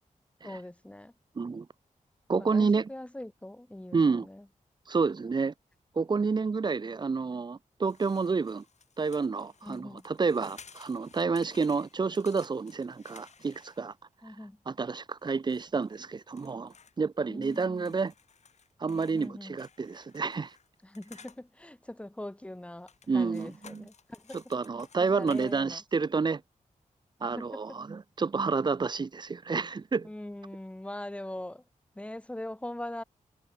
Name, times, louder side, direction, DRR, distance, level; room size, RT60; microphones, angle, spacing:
voice 1, 0.4-1.1 2.4-4.5 9.6-10.1 14.2-14.6 17.3-18.0 19.1-19.6 20.8-24.4 25.0-25.8 27.3-27.8 30.0-31.6 31.9-33.0, left 1 dB, 10° left, 2.6 m, -42 dB
voice 2, 2.3-2.9 3.9-4.3 4.9-5.5 6.0-8.6 9.0-13.9 14.7-18.1 18.8-20.5 23.1-23.9 24.5-26.4 27.2-30.1, right 4 dB, 30° right, 0.6 m, -29 dB
sound 1, 7.8-14.1 15.3-16.9 17.4-21.4 22.8-25.7, left 6 dB, 55° left, 1.8 m, -56 dB
wide cardioid pair, 160°, 14 cm